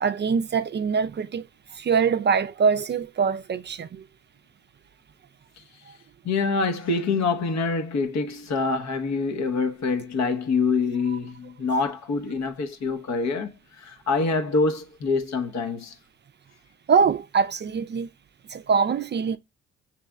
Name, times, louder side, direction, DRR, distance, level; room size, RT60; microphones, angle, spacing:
voice 1, 0.0-4.0 11.7-11.8 16.9-18.1 18.5-19.4, right 6 dB, 35° right, 0.4 m, -23 dB
voice 2, 6.2-16.0, left 4 dB, 60° left, 0.9 m, -25 dB
5.8 x 3.2 x 2.2 m
supercardioid pair, 75°, 31 cm